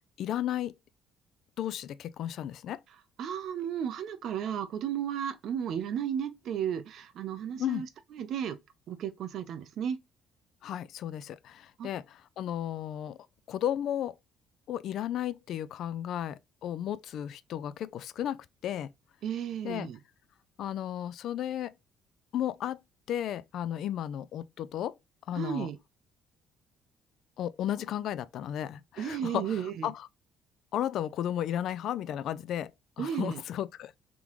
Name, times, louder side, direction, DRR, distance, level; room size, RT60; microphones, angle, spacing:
voice 1, 0.2-0.7 1.6-2.8 7.6-7.8 10.6-13.2 13.5-14.1 14.7-18.9 19.6-19.9 20.6-21.7 22.3-22.8 23.1-25.0 25.3-25.7 27.4-30.1 30.7-32.7 33.0-33.9, left 11 dB, 60° left, 0.4 m, -34 dB
voice 2, 3.2-8.6 8.9-10.0 11.8-11.9 19.2-20.0 25.3-25.8 29.0-29.9 33.0-33.4, right 9 dB, 55° right, 0.6 m, -34 dB
3.7 x 3.6 x 3.0 m
cardioid pair, 150°, 0 cm